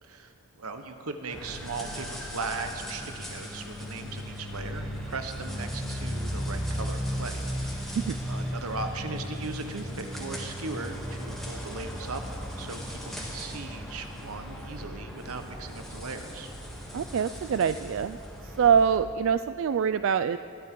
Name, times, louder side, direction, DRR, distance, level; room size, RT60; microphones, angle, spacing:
voice 1, 0.0-0.3 0.6-7.4 7.7-8.0 8.3-12.2 12.6-16.5, right 3 dB, 85° right, 6 dB, 1.2 m, -38 dB
sound 1, 1.3-19.0, equal, ahead, 2.6 m, -36 dB
voice 2, 16.9-18.2 18.4-20.4, right 7 dB, 60° right, 12 dB, 0.3 m, -24 dB
21.0 x 14.0 x 3.8 m, 2.6 s
head